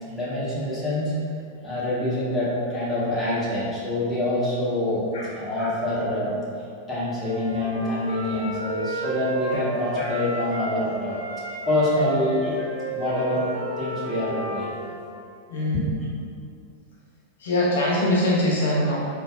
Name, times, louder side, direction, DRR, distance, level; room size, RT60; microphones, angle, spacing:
voice 1, 0.0-1.1 1.6-6.4 6.9-11.2 11.7-12.6 12.9-13.5 13.8-14.7, left 1 dB, 15° left, -9 dB, 1.0 m, -26 dB
Wind instrument woodwind instrument, 7.1-10.8 11.1-15.1, right 1 dB, 70° right, 0.5 m, -33 dB
voice 2, 15.5-15.9 17.4-19.0, left 1 dB, 60° left, -4 dB, 0.4 m, -23 dB
3.8 x 2.1 x 2.6 m, 2.4 s
figure-of-eight pair, 90°, 0 cm